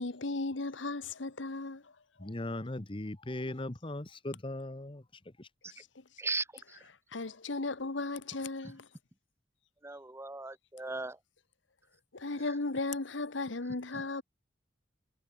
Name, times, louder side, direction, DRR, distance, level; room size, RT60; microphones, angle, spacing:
voice 1, 0.0-1.9 5.7-5.9 7.1-8.9 12.1-14.2, left 3 dB, 85° left, 1.4 m, -36 dB
voice 2, 2.2-5.0, left 1 dB, 30° left, 1.1 m, -38 dB
voice 3, 6.2-6.8 9.8-11.2 13.9-14.0, right 3 dB, 15° right, 1.2 m, -38 dB
head